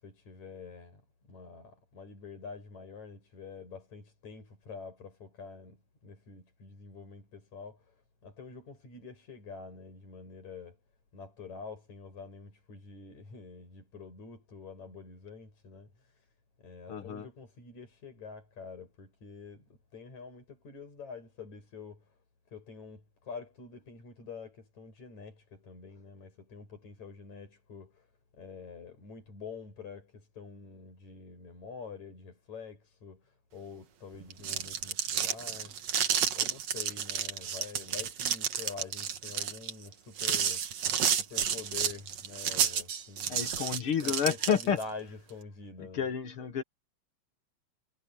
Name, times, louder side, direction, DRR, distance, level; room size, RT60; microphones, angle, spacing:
voice 1, 0.0-10.8 11.1-16.3 16.6-22.2 22.5-28.1 28.3-35.8 36.3-40.6 41.1-43.4 43.9-46.1, left 5 dB, 75° left, 8.4 m, -46 dB
voice 2, 16.9-17.3 43.3-44.8 45.8-46.6, left 7 dB, 50° left, 2.2 m, -30 dB
sound 1, 34.2-44.8, right 8 dB, 65° right, 2.7 m, -31 dB
omnidirectional pair, 3.3 m